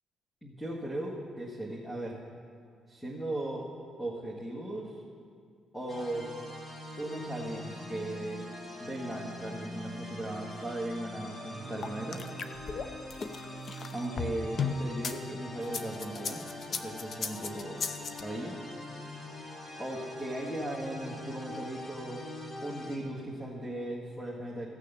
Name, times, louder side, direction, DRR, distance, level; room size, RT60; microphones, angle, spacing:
voice 1, 0.4-2.2 2.9-3.7 4.0-4.9 5.7-6.3 7.0-8.5 8.8-12.2 13.9-16.4 16.7-17.8 18.2-18.6 19.8-22.2 22.6-24.8, right 1 dB, 10° left, -3 dB, 1.8 m, -37 dB
sound 1, 5.9-23.0, left 1 dB, 30° left, 1.9 m, -43 dB
sound 2, 11.8-15.2 15.6-18.2, left 5 dB, 50° left, 0.7 m, -35 dB
16.0 x 6.7 x 6.7 m, 2.2 s
cardioid pair, 90°, 0 cm